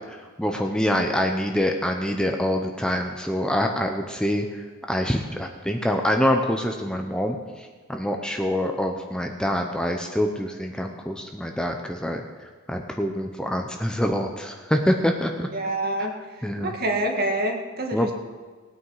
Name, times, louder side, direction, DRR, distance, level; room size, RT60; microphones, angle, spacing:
voice 1, 0.1-12.2 12.7-15.5 16.0-16.1 16.4-16.7 17.9-18.1, equal, 5° left, 3 dB, 0.8 m, -25 dB
voice 2, 15.5-16.1 16.6-18.1, right 1 dB, 50° right, 2 dB, 1.8 m, -26 dB
18.5 x 9.1 x 4.8 m, 1.4 s
head